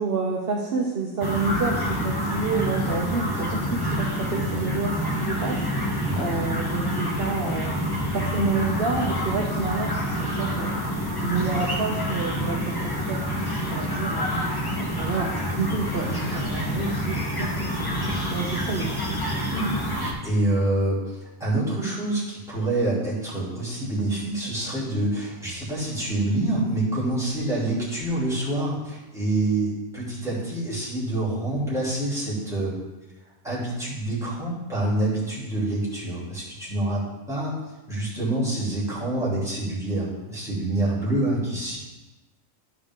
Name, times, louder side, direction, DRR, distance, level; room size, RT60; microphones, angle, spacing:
voice 1, 0.0-5.6 6.2-7.7 8.1-10.7 11.2-14.3 14.8-19.0, right 4 dB, 50° right, -2 dB, 1.0 m, -29 dB
sound 1, 1.2-20.1, equal, 15° left, 1.2 m, -27 dB
voice 2, 19.5-19.8 20.2-32.7 33.4-37.6 37.9-41.8, right 1 dB, ahead, -9 dB, 3.2 m, -26 dB
12.5 x 4.8 x 3.7 m, 1.1 s
omnidirectional pair, 1.4 m